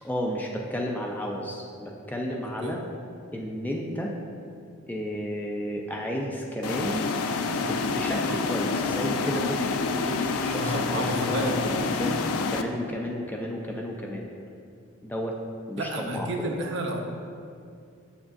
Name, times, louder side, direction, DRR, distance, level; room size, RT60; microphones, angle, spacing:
voice 1, 0.0-2.8 3.3-4.1 4.9-7.1 7.6-12.2 12.5-14.3 15.0-15.4 15.7-16.7, equal, 10° left, -1 dB, 0.3 m, -32 dB
sound 1, 6.6-12.6, left 4 dB, 75° left, 0.4 m, -28 dB
voice 2, 10.5-11.5 15.8-17.0, right 1 dB, 55° right, 2 dB, 0.6 m, -31 dB
7.0 x 6.5 x 2.5 m, 2.4 s
head